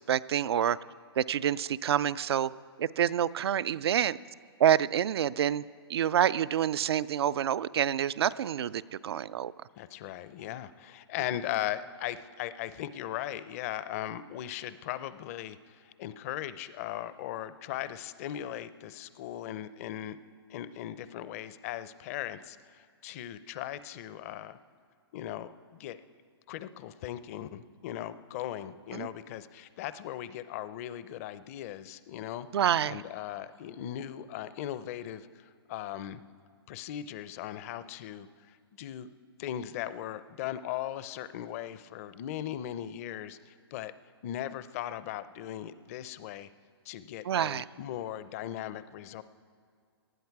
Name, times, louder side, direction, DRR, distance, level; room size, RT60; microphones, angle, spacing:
voice 1, 0.1-0.8 1.2-2.5 2.8-4.2 4.6-5.6 5.9-9.5 28.9-29.1 32.5-33.0 47.3-47.6, right 10 dB, 70° right, 17 dB, 0.4 m, -27 dB
voice 2, 9.8-20.2 20.5-24.6 25.1-26.0 26.5-32.5 32.8-36.2 36.7-39.1 39.4-43.9 44.2-46.5 46.9-49.2, left 12 dB, 35° left, 14 dB, 0.5 m, -38 dB
19.0 x 12.0 x 4.7 m, 2.2 s
hypercardioid pair, 150°, 14 cm